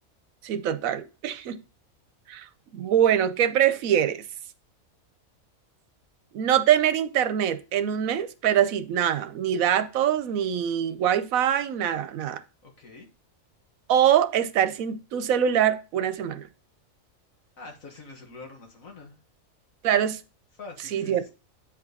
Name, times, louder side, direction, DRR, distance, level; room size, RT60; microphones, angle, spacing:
voice 1, 0.4-1.6 2.3-2.5 2.7-4.2 6.3-12.4 13.9-16.5 19.8-20.2 20.9-21.2, right 10 dB, 80° right, 1.1 m, -23 dB
voice 2, 12.6-13.1 17.6-19.2 20.6-21.3, left 3 dB, 80° left, 2.2 m, -45 dB
8.8 x 5.2 x 4.1 m
omnidirectional pair, 1.4 m